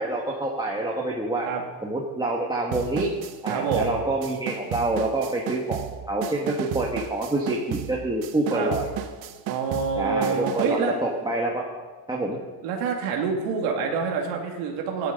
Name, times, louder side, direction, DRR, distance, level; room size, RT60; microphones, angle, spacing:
voice 1, 0.0-1.5 1.8-3.1 3.4-5.8 6.1-8.9 10.0-11.6 12.1-12.4, right 2 dB, 10° right, -3 dB, 1.7 m, -27 dB
sound 1, 2.7-10.9, right 10 dB, 50° right, 1.0 m, -34 dB
voice 2, 3.5-4.0 8.5-8.7 9.5-11.0 12.6-15.1, right 5 dB, 85° right, 1 dB, 2.5 m, -27 dB
15.0 x 11.5 x 5.3 m, 1.3 s
cardioid pair, 125°, 50 cm